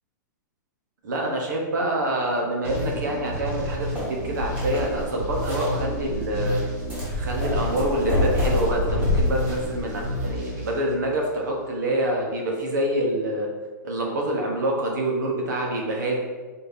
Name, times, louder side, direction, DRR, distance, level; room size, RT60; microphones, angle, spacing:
voice 1, 1.0-6.6 7.2-13.5 13.8-16.2, right 1 dB, 70° right, 0 dB, 1.0 m, -26 dB
sound 1, 2.6-11.5, equal, 45° right, 1.2 m, -31 dB
sound 2, 3.5-10.1, left 2 dB, 15° right, 1.1 m, -28 dB
4.2 x 2.8 x 3.4 m, 1.4 s
supercardioid pair, 175°, 10 cm